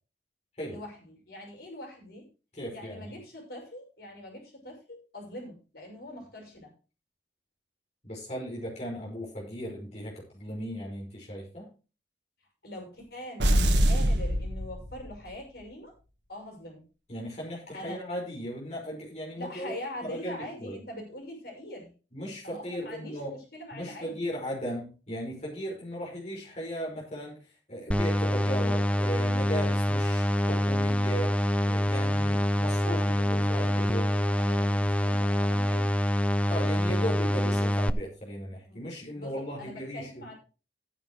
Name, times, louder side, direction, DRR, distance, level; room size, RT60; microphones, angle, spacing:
voice 1, 0.7-2.3 2.7-6.7 12.6-15.9 16.3-16.8 17.7-18.0 19.3-21.9 22.4-24.3 32.8-36.0 38.7-38.8 39.1-40.3, left 1 dB, 60° left, 0 dB, 6.1 m, -43 dB
voice 2, 2.5-3.2 8.0-11.7 17.1-19.7 20.0-20.8 22.1-23.4 23.7-27.4 27.7-34.1 36.5-40.3, equal, 40° left, -3 dB, 5.5 m, -37 dB
sound 1, 13.4-15.3, equal, 75° right, 1.6 m, -24 dB
sound 2, 27.9-37.9, equal, 5° left, 0.4 m, -26 dB
14.5 x 9.7 x 3.2 m, 0.33 s
head